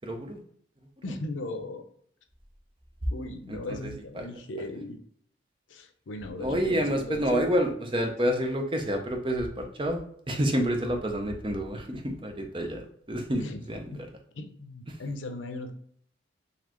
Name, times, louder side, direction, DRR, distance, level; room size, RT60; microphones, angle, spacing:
voice 1, 0.0-0.4 3.5-3.9 4.1-4.3 6.4-10.0 10.3-14.1, equal, 25° right, 3 dB, 0.6 m, -29 dB
voice 2, 1.0-1.9 3.1-5.0 5.7-7.7 13.4-13.6 13.9-14.0 14.3-15.7, left 2 dB, 85° left, 7 dB, 0.6 m, -37 dB
4.1 x 3.2 x 3.0 m, 0.64 s
head